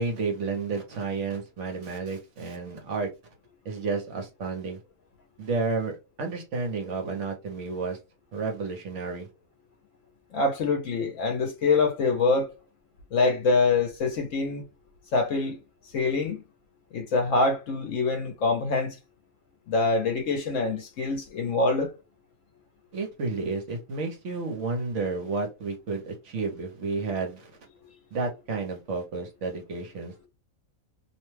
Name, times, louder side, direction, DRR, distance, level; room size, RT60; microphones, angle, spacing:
voice 1, 0.0-3.1 3.6-4.8 5.4-8.0 8.3-9.3 22.9-27.5 28.1-30.1, right 4 dB, 60° right, 1.1 m, -31 dB
voice 2, 10.3-12.5 13.1-14.6 15.1-15.6 15.8-16.4 16.9-19.0 19.7-21.9 27.9-28.0, left 3 dB, 70° left, 1.0 m, -25 dB
2.7 x 2.2 x 3.1 m
omnidirectional pair, 1.4 m